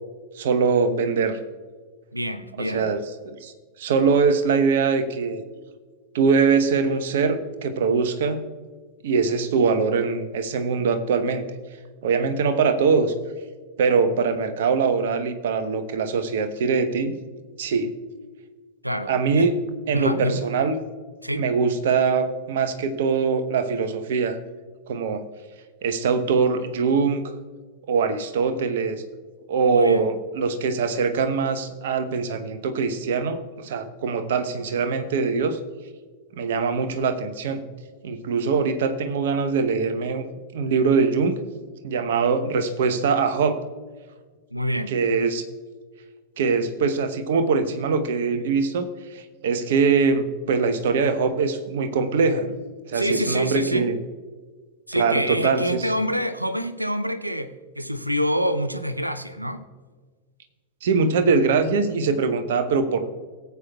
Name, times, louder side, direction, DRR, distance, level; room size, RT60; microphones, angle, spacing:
voice 1, 0.3-1.4 2.6-3.5 3.8-5.4 6.1-8.4 9.0-11.4 12.0-13.1 13.8-17.2 17.6-17.9 19.1-20.8 21.3-24.4 24.9-25.2 25.8-27.3 27.9-29.0 29.5-35.6 36.4-37.6 38.0-40.2 40.5-41.4 41.8-43.6 44.9-45.4 46.4-52.5 52.9-54.0 54.9-55.8 60.8-63.1, right 5 dB, 55° right, 8 dB, 0.9 m, -22 dB
voice 2, 2.1-2.9 18.8-19.4 19.9-20.4 21.2-21.4 29.7-30.1 44.5-45.0 52.9-53.9 54.9-59.6, equal, 85° right, 11 dB, 0.6 m, -26 dB
17.5 x 8.2 x 2.3 m, 1.5 s
figure-of-eight pair, 90°, 0 cm